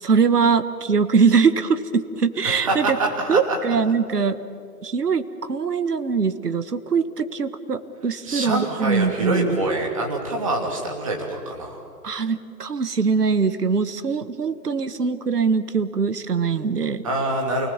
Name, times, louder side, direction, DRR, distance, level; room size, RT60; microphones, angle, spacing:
voice 1, 0.0-2.9 3.3-4.4 4.8-9.6 12.0-17.0, right 5 dB, 75° right, 11 dB, 1.6 m, -22 dB
voice 2, 2.4-3.6 8.2-11.8 17.0-17.7, right 2 dB, 20° right, 0 dB, 2.8 m, -25 dB
29.0 x 20.0 x 7.3 m, 2.5 s
hypercardioid pair, 170°, 48 cm